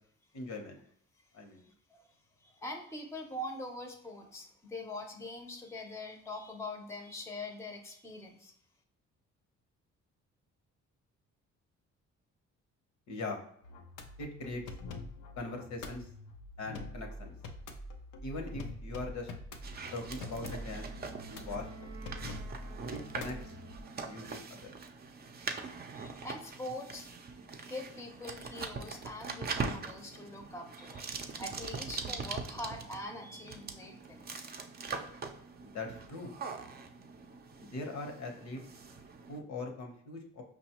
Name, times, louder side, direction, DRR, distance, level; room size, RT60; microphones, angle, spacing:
voice 1, 0.3-0.8 1.3-1.6 13.1-13.4 14.2-14.6 15.4-16.1 16.6-17.3 18.2-19.3 19.9-20.9 21.2-21.7 22.9-23.4 24.0-24.7 35.6-36.3 37.6-38.6 39.3-40.4, left 2 dB, 65° left, 3 dB, 0.9 m, -41 dB
voice 2, 1.6-2.1 2.4-8.5 25.3-25.4 25.9-27.1 27.3-34.4, left 1 dB, 10° left, 3 dB, 0.6 m, -43 dB
sound 1, 13.6-23.8, left 2 dB, 90° left, 0.6 m, -45 dB
sound 2, 19.6-39.4, right 4 dB, 30° right, 0.5 m, -42 dB
Wind instrument woodwind instrument, 20.1-24.4, right 4 dB, 80° right, 0.6 m, -52 dB
4.9 x 2.3 x 2.9 m, 0.68 s
cardioid pair, 90°, 30 cm